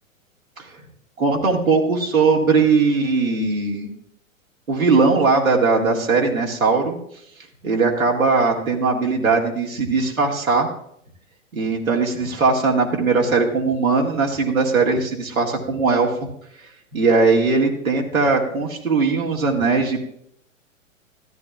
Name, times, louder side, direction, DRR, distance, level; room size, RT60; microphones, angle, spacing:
voice 1, 1.2-3.9 4.7-6.9 7.6-10.7 11.5-16.1 16.9-20.0, right 4 dB, 85° right, -1 dB, 2.0 m, -19 dB
13.5 x 13.0 x 2.3 m, 0.71 s
figure-of-eight pair, 110°, 40 cm